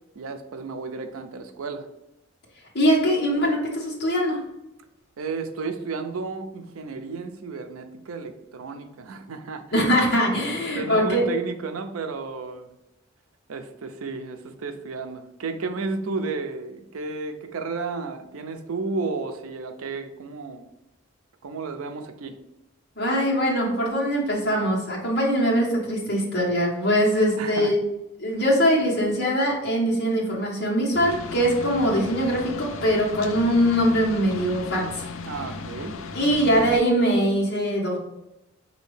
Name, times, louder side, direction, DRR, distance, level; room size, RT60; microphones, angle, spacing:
voice 1, 0.2-1.9 5.2-9.8 10.8-12.7 13.5-20.7 21.4-22.4 27.4-27.7 35.3-36.0, right 4 dB, 85° right, 7 dB, 0.5 m, -32 dB
voice 2, 2.7-4.4 9.7-11.2 22.9-27.8 28.2-35.1 36.1-38.0, equal, 50° left, -3 dB, 1.3 m, -22 dB
sound 1, 30.9-36.8, left 4 dB, 75° left, 0.4 m, -36 dB
5.2 x 2.8 x 3.2 m, 0.91 s
head